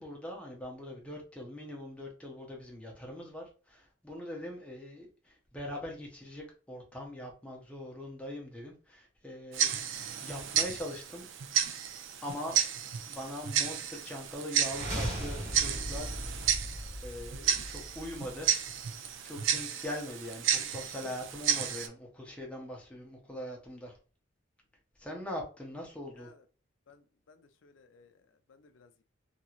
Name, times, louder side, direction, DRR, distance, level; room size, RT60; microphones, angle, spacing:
voice 1, 0.0-9.7 10.2-11.3 12.2-12.6 13.1-16.5 16.7-18.6 18.9-23.9 25.0-26.3, left 1 dB, 5° left, 0.7 m, -42 dB
Tick-tock, 9.5-21.9, right 9 dB, 70° right, 0.4 m, -32 dB
sound 1, 14.6-18.6, equal, 35° right, 1.1 m, -38 dB
voice 2, 26.9-28.1 28.5-29.0, left 3 dB, 75° left, 0.5 m, -60 dB
2.9 x 2.8 x 2.4 m
head